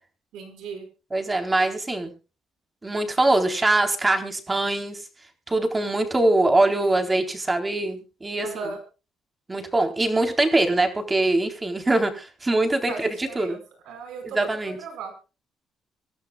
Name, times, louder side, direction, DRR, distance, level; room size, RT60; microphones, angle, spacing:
voice 1, 0.3-0.9 8.4-8.8 12.9-15.3, right 4 dB, 85° right, 6 dB, 5.2 m, -37 dB
voice 2, 1.1-2.1 2.8-5.0 5.5-8.5 9.5-13.6 14.2-14.8, right 2 dB, 20° right, 5 dB, 3.9 m, -23 dB
25.0 x 12.0 x 2.4 m, 0.33 s
cardioid pair, 90°, 0 cm